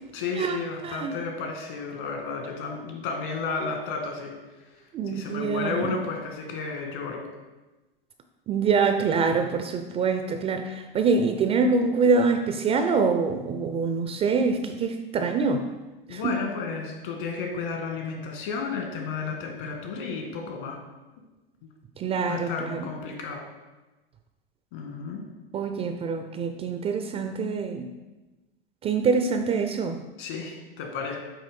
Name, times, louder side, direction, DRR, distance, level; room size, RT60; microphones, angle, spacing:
voice 1, 0.1-7.2 16.1-20.8 22.2-23.4 24.7-25.3 30.2-31.2, left 4 dB, 60° left, 2 dB, 1.8 m, -32 dB
voice 2, 0.8-1.1 4.9-5.9 8.5-15.6 16.1-16.3 22.0-22.9 25.5-27.9 28.8-30.0, right 4 dB, 20° right, 7 dB, 0.4 m, -25 dB
8.3 x 3.0 x 5.3 m, 1.1 s
hypercardioid pair, 95°, 29 cm